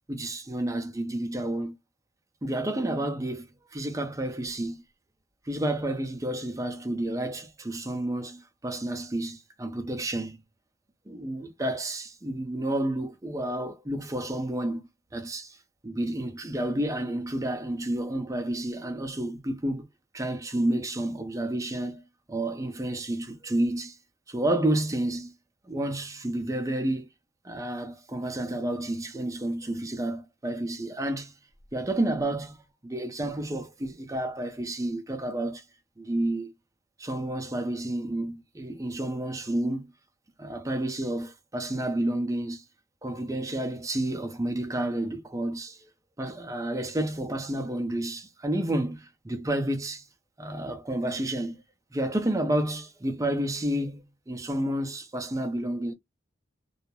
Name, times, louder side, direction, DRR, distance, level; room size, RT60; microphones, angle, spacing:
voice 1, 0.1-1.8 2.4-4.8 5.5-10.4 11.1-14.8 15.1-15.6 15.8-19.9 20.1-22.0 22.3-24.0 24.3-25.3 25.7-27.1 27.4-31.3 31.7-35.6 36.0-36.5 37.0-39.9 40.4-42.6 43.0-45.8 46.2-50.0 50.4-51.6 51.9-55.9, right 1 dB, 15° right, 0.5 m, -30 dB
2.3 x 2.0 x 2.9 m
head